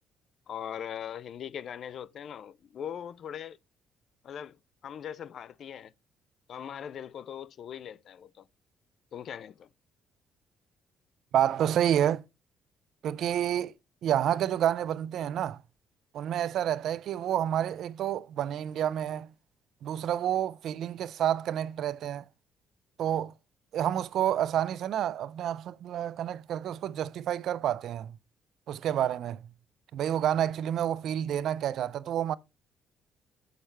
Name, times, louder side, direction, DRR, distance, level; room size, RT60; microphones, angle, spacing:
voice 1, 0.5-3.6 4.2-5.9 6.5-8.5 9.1-9.7, left 9 dB, 45° left, 0.3 m, -40 dB
voice 2, 11.3-12.2 13.0-13.7 14.0-15.6 16.1-19.3 19.8-22.2 23.0-23.3 23.7-28.2 28.7-29.4 29.9-32.3, right 10 dB, 60° right, 0.3 m, -29 dB
6.5 x 5.8 x 3.2 m
cardioid pair, 170°, 0 cm